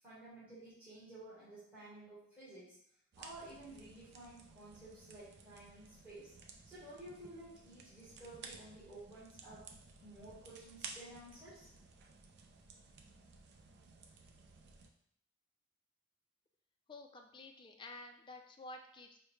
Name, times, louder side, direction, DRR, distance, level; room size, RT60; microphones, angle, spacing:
voice 1, 0.0-2.8 3.2-6.3 6.6-9.7 10.0-11.7, right 1 dB, 10° right, -12 dB, 1.2 m, -53 dB
sound 1, 3.1-14.9, right 4 dB, 60° right, 0.4 m, -55 dB
voice 2, 16.9-19.2, left 2 dB, 25° left, 3 dB, 0.3 m, -51 dB
4.8 x 2.1 x 3.1 m, 0.69 s
head